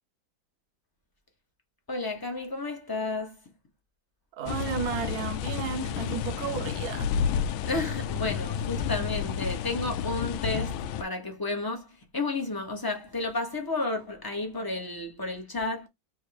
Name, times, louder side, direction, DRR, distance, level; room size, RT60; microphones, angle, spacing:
voice 1, 1.9-3.4 7.6-15.9, left 3 dB, 20° left, 0.6 m, -32 dB
voice 2, 4.3-7.1, right 7 dB, 60° right, 1.0 m, -33 dB
sound 1, 4.5-11.0, left 7 dB, 90° left, 1.4 m, -31 dB
3.6 x 3.0 x 4.7 m
omnidirectional pair, 2.1 m